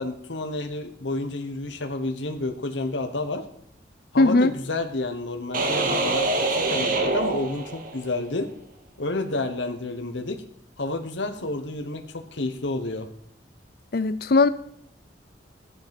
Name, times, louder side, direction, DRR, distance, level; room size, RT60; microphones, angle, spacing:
voice 1, 0.0-3.4 4.1-6.3 6.6-8.5 9.0-10.4 10.8-13.1, left 2 dB, 80° left, 6 dB, 1.2 m, -30 dB
voice 2, 4.2-4.5 13.9-14.5, left 3 dB, 55° left, 15 dB, 0.6 m, -18 dB
sound 1, 5.5-8.2, right 2 dB, 50° right, 1.8 m, -25 dB
13.5 x 10.5 x 5.3 m, 0.70 s
head